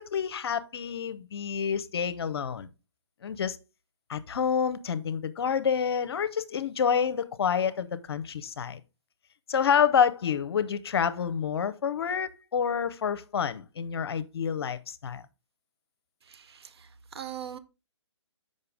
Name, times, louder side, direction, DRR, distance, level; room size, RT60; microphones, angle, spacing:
voice 1, 0.0-2.7 3.2-3.6 4.1-8.8 9.5-15.2, left 7 dB, 60° left, 0.7 m, -28 dB
voice 2, 16.2-17.6, right 9 dB, 60° right, 0.8 m, -41 dB
6.7 x 5.4 x 3.5 m
figure-of-eight pair, 135°, 15 cm